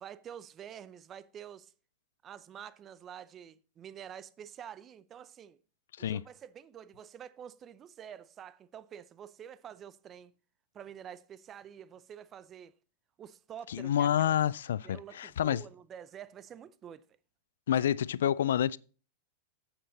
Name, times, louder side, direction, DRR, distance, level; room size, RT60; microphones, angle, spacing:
voice 1, 0.0-1.7 2.2-5.6 6.0-10.3 10.7-12.8 13.2-14.4 14.8-17.1 17.7-17.9, right 9 dB, 30° right, 0.5 m, -48 dB
voice 2, 13.7-15.6 17.7-18.8, left 10 dB, 80° left, 0.3 m, -28 dB
7.9 x 7.7 x 4.0 m
hypercardioid pair, 115°, 0 cm